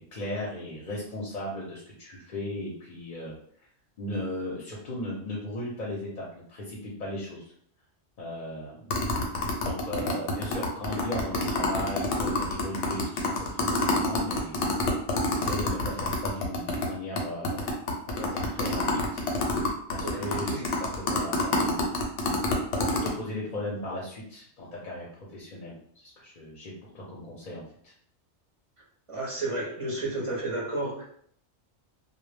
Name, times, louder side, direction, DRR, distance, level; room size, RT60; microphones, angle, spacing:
voice 1, 0.0-3.3 4.0-7.4 8.2-8.9 9.6-14.6 15.3-17.7 18.1-19.2 19.9-21.9 22.2-22.3 22.8-27.9, left 1 dB, 50° left, -3 dB, 0.6 m, -37 dB
sound 1, 8.9-16.9 17.2-17.3 17.4-23.1, left 3 dB, 85° left, 0.9 m, -27 dB
voice 2, 20.0-20.7 29.1-31.0, right 2 dB, 40° right, -4 dB, 0.5 m, -32 dB
2.0 x 2.0 x 3.2 m, 0.62 s
omnidirectional pair, 1.2 m